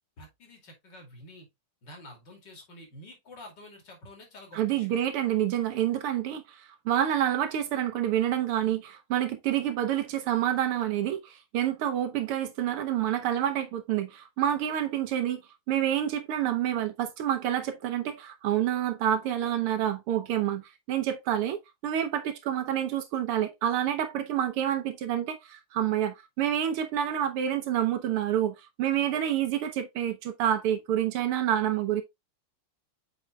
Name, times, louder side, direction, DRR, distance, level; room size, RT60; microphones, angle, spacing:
voice 1, 0.2-1.5 1.8-5.1, left 1 dB, 55° left, 3.2 m, -49 dB
voice 2, 4.5-6.6 6.9-15.4 15.7-32.0, right 10 dB, 85° right, 1.8 m, -28 dB
7.9 x 5.6 x 2.3 m
omnidirectional pair, 2.4 m